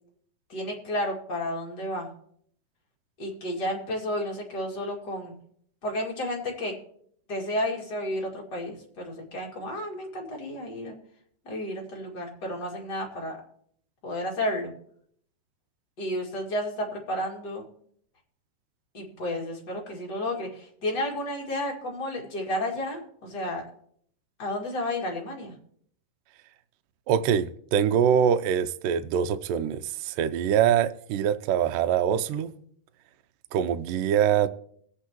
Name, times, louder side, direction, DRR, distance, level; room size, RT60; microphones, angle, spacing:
voice 1, 0.5-2.1 3.2-5.3 5.8-6.7 7.3-11.0 11.4-13.4 14.0-14.7 16.0-17.7 18.9-23.6 24.4-25.5, left 1 dB, 30° left, 2.2 m, -32 dB
voice 2, 27.1-32.5 33.5-34.5, right 9 dB, 85° right, 1.9 m, -24 dB
21.0 x 8.1 x 3.0 m
omnidirectional pair, 4.5 m